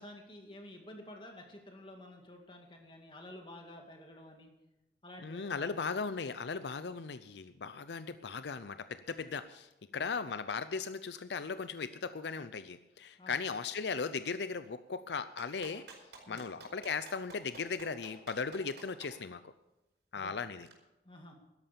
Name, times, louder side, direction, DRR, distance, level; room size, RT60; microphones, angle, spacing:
voice 1, 0.0-4.5 5.0-5.7 9.9-10.1 13.2-13.5 16.3-16.4 20.2-20.4 21.0-21.4, left 1 dB, 25° left, 2 dB, 2.2 m, -51 dB
voice 2, 5.2-15.9 16.3-19.5 20.1-20.7, left 5 dB, 75° left, 12 dB, 0.5 m, -37 dB
Clapping, 15.4-19.1 20.6-20.7, right 3 dB, 90° right, 5.1 m, -51 dB
13.0 x 11.0 x 6.9 m, 0.96 s
head